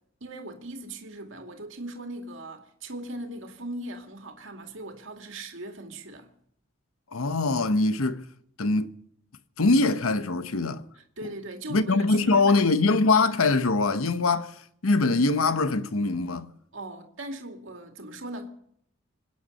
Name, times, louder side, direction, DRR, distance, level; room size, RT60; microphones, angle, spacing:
voice 1, 0.2-6.3 11.0-12.6 16.7-18.5, right 1 dB, 60° right, 2.3 m, -39 dB
voice 2, 7.1-8.3 8.6-9.0 9.6-10.8 11.7-16.5, left 3 dB, 80° left, 1.0 m, -23 dB
26.0 x 9.5 x 5.4 m
head